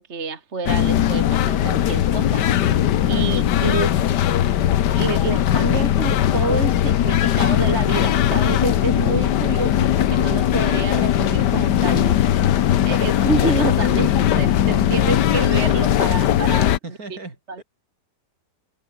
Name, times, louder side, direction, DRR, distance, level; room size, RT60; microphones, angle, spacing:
voice 1, 0.0-2.5 3.1-4.0 4.9-12.2 12.8-16.7, right 4 dB, 40° right, 2.3 m, -27 dB
sound 1, 0.7-16.8, left 11 dB, 85° left, 1.6 m, -19 dB
voice 2, 16.6-17.6, right 3 dB, 60° right, 4.5 m, -38 dB
omnidirectional pair, 1.8 m